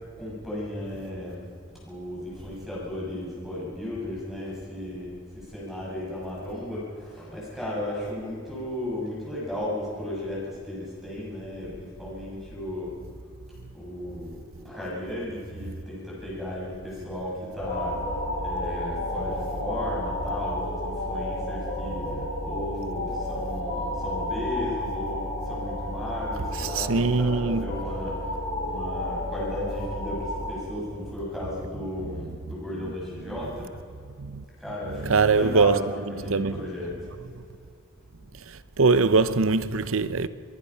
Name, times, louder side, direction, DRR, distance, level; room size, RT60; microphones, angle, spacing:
voice 1, 0.2-1.4 1.8-5.2 5.5-12.9 13.7-18.0 18.4-28.2 28.6-33.7 34.6-37.1, left 1 dB, ahead, 6.8 m, -35 dB
sound 1, 17.6-30.5, left 1 dB, 50° left, 6.2 m, -31 dB
voice 2, 26.5-27.7 32.0-32.1 32.8-32.9 33.3-33.4 34.2-34.4 34.8-35.8 36.1-36.6 37.3-37.4 38.3-40.3, right 4 dB, 70° right, 0.8 m, -23 dB
24.5 x 20.5 x 5.7 m
head